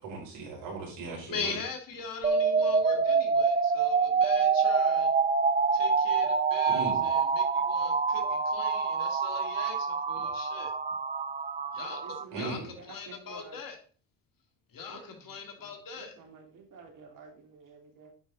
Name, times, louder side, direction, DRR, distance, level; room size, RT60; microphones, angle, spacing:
voice 1, 0.0-1.6 6.7-7.0 12.3-12.6, right 4 dB, 70° right, -2 dB, 5.0 m, -38 dB
voice 2, 1.3-5.1 5.7-10.7 11.7-12.0 12.3-13.8 14.7-16.2, left 4 dB, 55° left, 5 dB, 2.2 m, -41 dB
sound 1, 2.2-12.2, right 5 dB, 20° right, 0.7 m, -26 dB
voice 3, 2.5-3.4 12.0-13.6 14.8-18.1, right 5 dB, 50° right, 1 dB, 3.2 m, -51 dB
10.0 x 5.4 x 3.6 m, 0.40 s
supercardioid pair, 80°, 41 cm